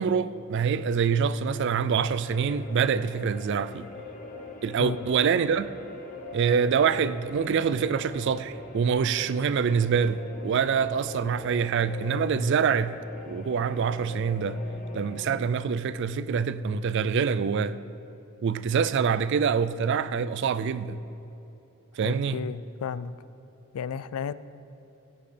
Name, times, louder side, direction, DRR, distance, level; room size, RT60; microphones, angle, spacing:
voice 1, 0.0-3.9 4.6-5.7 6.3-13.0 13.3-14.6 14.9-17.8 18.4-21.0 22.0-22.4, right 6 dB, 55° right, 0.3 m, -25 dB
sound 1, 2.3-15.3, left 2 dB, 35° left, 0.9 m, -42 dB
voice 2, 22.0-23.1 23.7-24.3, left 7 dB, 75° left, 0.3 m, -33 dB
16.5 x 8.7 x 3.3 m
head